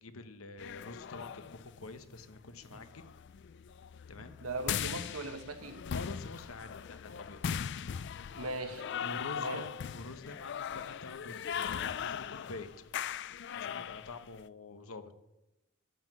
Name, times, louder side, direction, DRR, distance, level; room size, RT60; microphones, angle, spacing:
voice 1, 0.0-3.0 4.1-4.3 5.9-7.4 9.0-12.7 13.5-15.1, left 3 dB, 80° left, 1.0 m, -46 dB
sound 1, 0.6-14.4, left 8 dB, 55° left, 0.4 m, -39 dB
voice 2, 4.2-5.8 8.3-8.9 9.4-9.6, right 2 dB, 85° right, 1.3 m, -39 dB
12.5 x 5.8 x 7.7 m
head